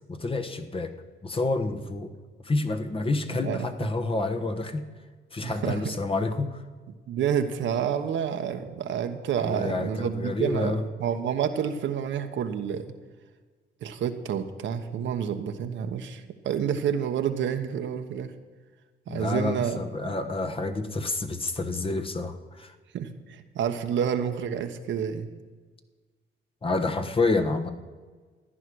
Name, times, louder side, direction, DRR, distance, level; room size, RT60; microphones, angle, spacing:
voice 1, 0.1-0.9 1.2-2.1 2.4-4.9 5.3-6.6 9.4-10.8 19.1-22.7 26.6-27.7, left 3 dB, 25° left, 7 dB, 1.2 m, -28 dB
voice 2, 3.3-3.9 5.4-5.9 7.1-12.8 13.8-18.3 19.1-20.1 22.9-25.3, right 8 dB, 70° right, 7 dB, 1.1 m, -29 dB
14.0 x 9.9 x 6.3 m, 1.4 s
cardioid pair, 90°, 20 cm